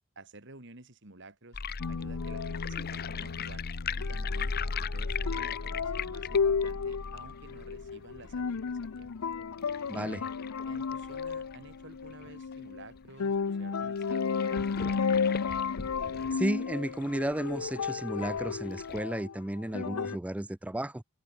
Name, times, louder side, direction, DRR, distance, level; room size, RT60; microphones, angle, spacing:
voice 1, 0.2-1.6 1.9-3.7 4.0-9.1 9.8-10.2 10.7-15.1, right 2 dB, 55° right, 2.8 m, -52 dB
sound 1, 1.5-12.5 13.0-13.1 13.3-13.4 14.0-19.0, left 4 dB, 45° left, 0.9 m, -38 dB
sound 2, 1.8-20.2, left 5 dB, 80° left, 0.6 m, -33 dB
voice 2, 9.9-10.2 16.3-21.0, right 1 dB, 5° right, 0.3 m, -33 dB
open air
head